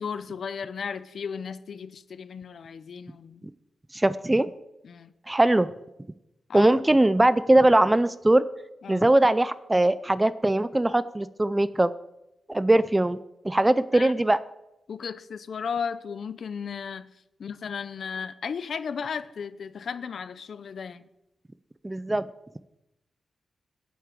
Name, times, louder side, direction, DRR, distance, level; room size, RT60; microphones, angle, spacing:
voice 1, 0.0-3.4 4.8-5.1 6.5-6.9 8.8-9.1 13.9-14.1 14.9-17.1 17.4-21.1, left 6 dB, 55° left, 0.6 m, -35 dB
voice 2, 3.9-4.5 5.3-5.7 6.5-8.4 8.9-11.9 12.5-13.2 13.4-14.4 21.8-22.2, right 1 dB, 10° right, 0.4 m, -21 dB
9.4 x 8.3 x 7.5 m
wide cardioid pair, 165°, 0 cm